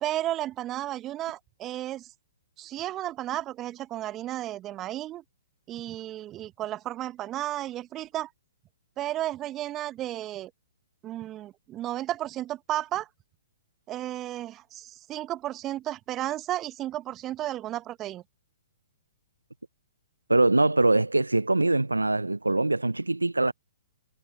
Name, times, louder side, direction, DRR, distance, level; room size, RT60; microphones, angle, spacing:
voice 1, 0.0-2.1 2.6-5.2 5.7-8.3 9.0-10.5 11.0-13.1 13.9-18.2, right 13 dB, 25° right, 1.0 m, -33 dB
voice 2, 20.3-23.5, right 2 dB, 90° right, 0.6 m, -23 dB
figure-of-eight pair, 120°, 0 cm